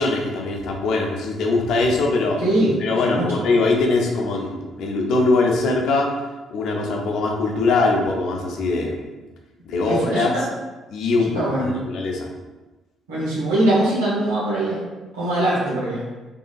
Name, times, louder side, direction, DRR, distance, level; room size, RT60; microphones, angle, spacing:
voice 1, 0.0-2.4 2.8-6.1 6.5-9.0 9.7-10.5 10.9-12.3, left 3 dB, 60° left, 1 dB, 0.5 m, -22 dB
voice 2, 2.4-2.7 3.0-3.2 9.8-10.2 11.3-11.7 13.1-14.8 15.1-16.0, right 1 dB, 80° right, -8 dB, 1.1 m, -21 dB
3.9 x 2.8 x 2.3 m, 1.2 s
figure-of-eight pair, 45°, 0 cm